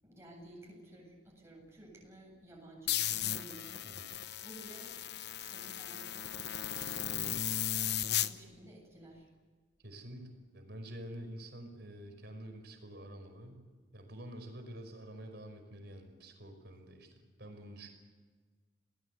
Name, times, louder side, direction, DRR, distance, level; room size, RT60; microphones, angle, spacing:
voice 1, 0.0-3.9 4.4-4.9 5.3-7.2 7.8-9.3, right 1 dB, 15° right, -1 dB, 7.8 m, -54 dB
sound 1, 2.9-8.3, left 11 dB, 60° left, 1.0 m, -36 dB
voice 2, 3.8-4.2 9.8-13.6 13.9-17.9, right 1 dB, 60° right, 5 dB, 5.6 m, -48 dB
29.0 x 19.5 x 8.3 m, 1.4 s
head